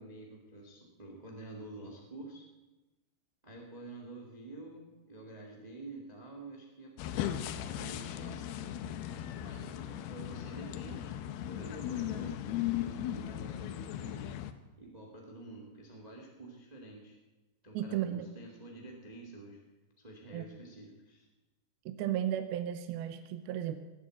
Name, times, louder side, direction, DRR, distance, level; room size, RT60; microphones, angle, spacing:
voice 1, 0.0-2.4 3.4-6.9 7.8-8.6 9.4-11.1 11.4-14.3 14.8-17.2 17.6-19.6 20.0-21.3, right 2 dB, 45° right, 0 dB, 0.5 m, -48 dB
sound 1, 7.0-14.5, left 11 dB, 80° left, 2.3 m, -37 dB
voice 2, 17.7-18.3 20.3-20.5 21.9-23.8, right 11 dB, 75° right, 9 dB, 2.3 m, -34 dB
18.5 x 8.5 x 7.8 m, 1.1 s
omnidirectional pair, 5.1 m